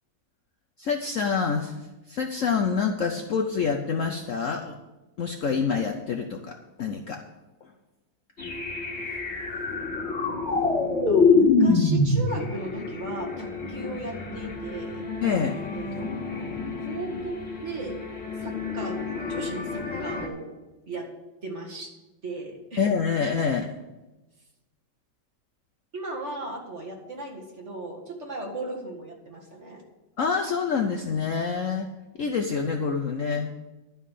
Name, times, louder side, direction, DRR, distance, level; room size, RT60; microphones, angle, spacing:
voice 1, 0.8-1.8 2.1-4.8 5.2-7.2 7.6-7.7 15.2-15.6 22.8-23.7 30.2-31.9 32.2-33.5, left 5 dB, 60° left, 4 dB, 0.9 m, -26 dB
sound 1, 8.4-20.3, left 3 dB, 35° left, 1.8 m, -26 dB
voice 2, 11.1-15.0 15.7-16.5 16.8-18.0 18.4-20.5 20.9-21.1 21.4-21.9 22.2-22.9 25.9-29.8, right 2 dB, 40° right, 0 dB, 2.2 m, -36 dB
11.5 x 5.6 x 8.3 m, 1.1 s
omnidirectional pair, 2.0 m